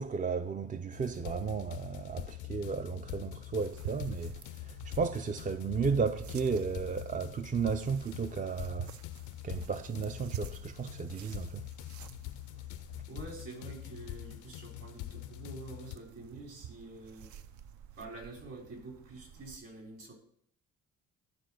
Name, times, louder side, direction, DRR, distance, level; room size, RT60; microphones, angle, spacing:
voice 1, 0.0-8.9 9.4-11.7, right 5 dB, 25° right, 0.4 m, -34 dB
sound 1, 0.9-16.0, left 16 dB, 80° left, 0.5 m, -44 dB
sound 2, 3.6-19.6, right 10 dB, 70° right, 0.6 m, -50 dB
voice 2, 13.1-17.3 17.9-20.1, right 3 dB, 55° right, 4.0 m, -47 dB
11.5 x 4.3 x 6.2 m
cardioid pair, 90°, 30 cm